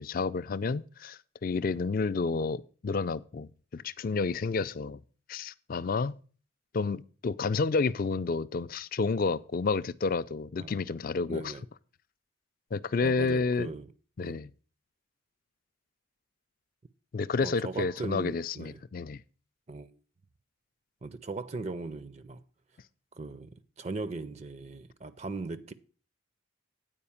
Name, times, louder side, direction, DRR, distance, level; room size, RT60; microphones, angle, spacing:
voice 1, 0.0-5.0 5.3-6.2 6.7-11.5 12.7-13.7 14.2-14.5 17.1-19.2, left 4 dB, 45° left, 0.3 m, -30 dB
voice 2, 10.6-10.9 11.3-11.6 13.0-13.9 14.2-14.4 17.4-18.8 19.7-19.9 21.0-22.4 23.1-25.7, right 3 dB, 30° right, 0.4 m, -39 dB
8.7 x 4.9 x 7.0 m
head